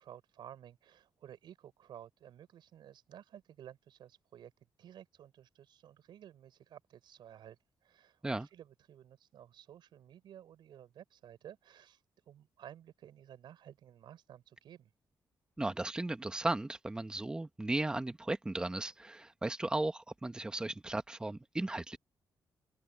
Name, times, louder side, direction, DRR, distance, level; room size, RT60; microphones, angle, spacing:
voice 1, 0.0-12.0 12.3-14.9, right 10 dB, 75° right, 5.8 m, -54 dB
voice 2, 15.6-22.0, right 2 dB, 10° right, 1.2 m, -36 dB
open air
wide cardioid pair, 165°, 8 cm